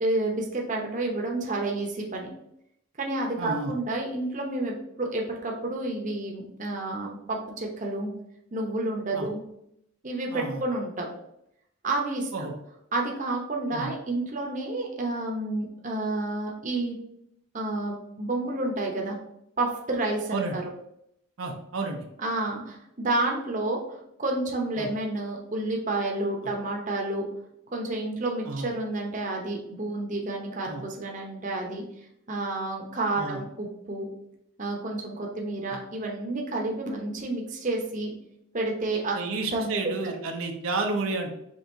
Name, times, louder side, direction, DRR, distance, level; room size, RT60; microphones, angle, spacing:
voice 1, 0.0-2.3 3.0-8.1 8.5-9.4 10.0-11.1 11.8-12.3 12.9-17.0 17.5-19.2 19.6-20.6 22.2-23.8 24.2-27.2 27.7-31.8 32.3-34.1 34.6-38.1 38.5-39.2 39.5-40.1, right 2 dB, 40° right, 0 dB, 0.8 m, -30 dB
voice 2, 3.4-3.7 9.1-9.3 10.3-10.6 12.3-12.5 13.7-13.9 20.3-20.6 21.4-22.1 24.8-24.9 28.5-28.7 30.7-30.8 33.2-33.4 39.1-41.4, right 3 dB, 85° right, 3 dB, 0.7 m, -31 dB
5.3 x 3.4 x 2.7 m, 0.77 s
head